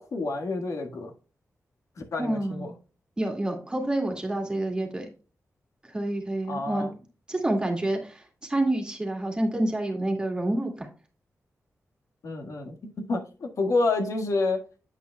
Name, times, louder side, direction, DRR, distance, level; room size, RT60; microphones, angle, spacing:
voice 1, 0.1-1.1 2.1-2.7 6.5-6.9 12.2-14.6, left 3 dB, 75° left, 1.7 m, -28 dB
voice 2, 2.2-2.7 3.2-5.1 5.9-7.0 7.3-10.9, right 1 dB, 15° right, 2.1 m, -28 dB
8.5 x 8.2 x 2.3 m
wide cardioid pair, 150°, 5 cm